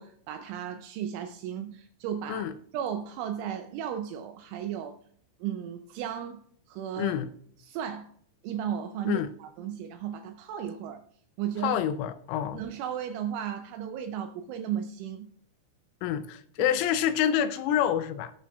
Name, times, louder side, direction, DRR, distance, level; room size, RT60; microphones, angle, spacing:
voice 1, 0.0-2.5 2.7-5.0 5.4-6.4 6.7-7.1 7.6-8.1 8.4-11.0 11.4-11.8 12.5-15.3 16.6-16.7, right 9 dB, 80° right, 2.9 m, -35 dB
voice 2, 7.0-7.3 9.1-9.3 11.6-12.6 16.0-18.3, left 10 dB, 85° left, 3.1 m, -27 dB
18.5 x 8.5 x 2.3 m
omnidirectional pair, 5.9 m